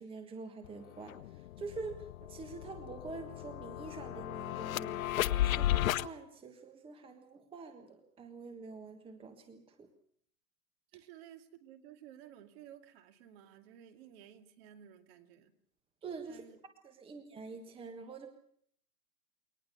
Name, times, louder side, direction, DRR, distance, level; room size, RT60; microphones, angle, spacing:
voice 1, 0.0-9.9 16.0-16.4 16.8-18.3, right 4 dB, 10° right, 7 dB, 1.5 m, -46 dB
sound 1, 0.6-0.7 1.1-6.1, left 13 dB, 60° left, 0.9 m, -34 dB
voice 2, 10.9-15.5 16.2-16.6, right 10 dB, 40° right, 8 dB, 2.4 m, -55 dB
24.0 x 19.0 x 6.9 m, 0.64 s
hypercardioid pair, 140°, 47 cm